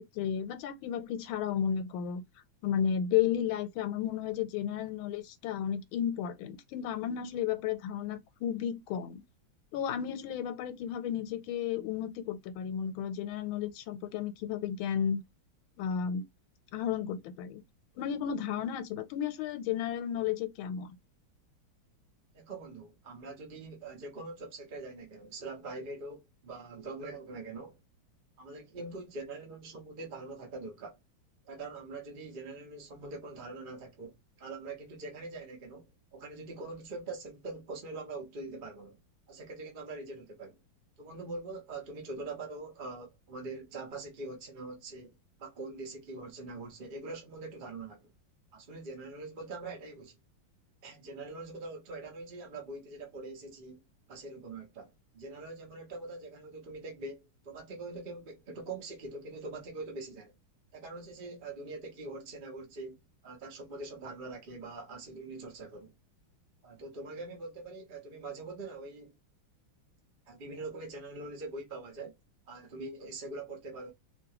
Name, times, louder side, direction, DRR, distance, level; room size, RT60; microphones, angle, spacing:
voice 1, 0.0-2.2 2.6-9.2 9.7-15.2 15.8-16.2 16.7-17.6 18.0-21.0, left 9 dB, 90° left, 1.4 m, -33 dB
voice 2, 22.3-27.8 28.4-31.0 31.4-39.0 39.3-40.6 41.0-48.1 48.5-50.2 50.8-53.8 54.1-60.3 60.7-63.0 63.2-65.9 66.6-69.1 70.3-72.2 72.5-73.9, right 3 dB, 40° right, 0.7 m, -43 dB
2.9 x 2.8 x 2.8 m
omnidirectional pair, 2.2 m